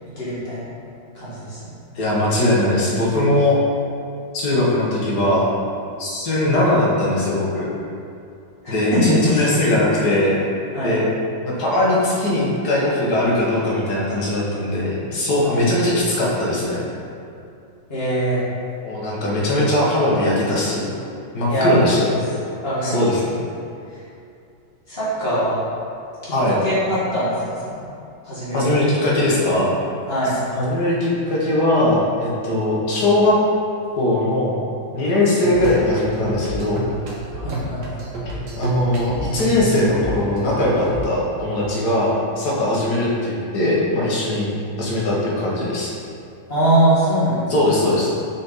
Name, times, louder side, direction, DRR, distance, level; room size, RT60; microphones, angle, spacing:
voice 1, 0.1-0.7 1.1-1.7 8.6-9.5 10.7-10.9 15.4-15.8 17.9-18.4 21.5-21.7 22.6-23.0 24.9-25.6 26.5-27.8 28.2-28.6 29.0-29.1 30.1-30.4 37.4-38.0 46.5-47.5, right 1 dB, 30° left, -11 dB, 1.7 m, -22 dB
voice 2, 1.9-3.6 4.3-5.5 6.0-7.7 8.7-10.5 10.8-11.1 11.5-16.8 18.8-21.0 21.3-22.1 22.8-23.4 26.3-26.6 28.5-29.7 30.6-33.4 34.0-34.6 34.9-36.8 38.3-44.5 44.8-45.9 47.5-48.1, left 1 dB, 55° left, -5 dB, 1.6 m, -20 dB
sound 1, 35.4-41.0, right 1 dB, 70° right, 1.6 m, -29 dB
5.9 x 4.2 x 4.0 m, 2.5 s
omnidirectional pair, 2.3 m